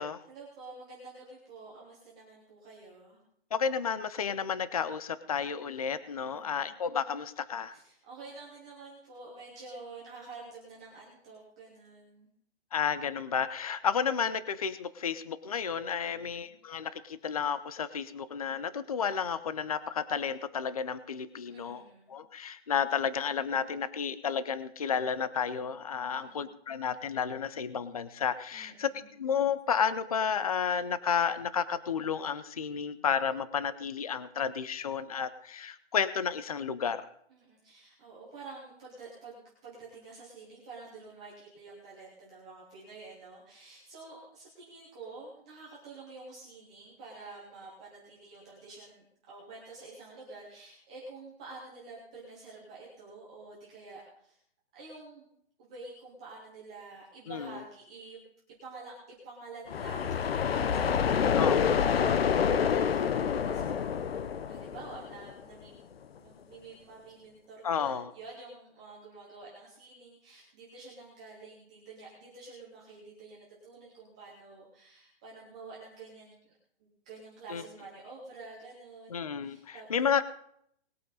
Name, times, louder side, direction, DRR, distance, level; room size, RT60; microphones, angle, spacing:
voice 1, 0.2-3.2 6.2-6.8 7.7-12.3 16.0-16.6 21.5-22.1 26.0-26.5 28.5-29.1 37.3-54.4 54.7-55.3 55.6-58.2 58.6-58.9 59.2-65.8 66.2-76.5 76.8-80.0, right 3 dB, 5° right, -6 dB, 0.7 m, -49 dB
voice 2, 3.5-7.7 12.7-21.8 22.1-28.9 29.2-37.1 57.3-57.6 61.3-61.8 67.6-68.1 77.5-77.6 79.1-80.2, left 7 dB, 35° left, 15 dB, 0.5 m, -32 dB
sound 1, 59.7-65.4, left 7 dB, 65° left, 0.8 m, -27 dB
20.0 x 8.5 x 4.1 m, 0.68 s
hypercardioid pair, 180°, 32 cm